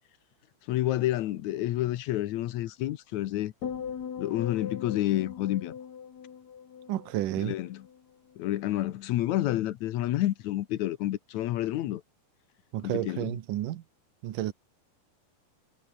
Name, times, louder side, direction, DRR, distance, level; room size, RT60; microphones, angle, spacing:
voice 1, 0.7-3.5 4.2-5.7 7.4-7.9 8.4-12.0 12.8-13.4, left 14 dB, 90° left, 1.6 m, -29 dB
sound 1, 3.6-8.0 8.3-8.7, left 7 dB, 45° left, 3.4 m, -40 dB
voice 2, 6.9-7.5 12.7-13.8 14.2-14.5, right 14 dB, 65° right, 2.5 m, -31 dB
omnidirectional pair, 4.7 m